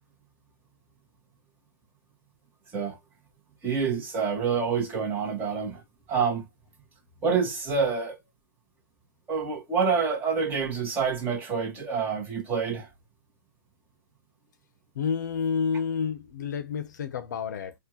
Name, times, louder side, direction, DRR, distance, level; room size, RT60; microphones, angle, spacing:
voice 1, 3.6-5.8 6.1-6.4 7.2-8.2 9.3-12.9, right 5 dB, 15° right, 1.6 m, -27 dB
voice 2, 14.9-17.7, left 6 dB, 55° left, 0.8 m, -29 dB
4.3 x 2.5 x 2.9 m
hypercardioid pair, 135°, 12 cm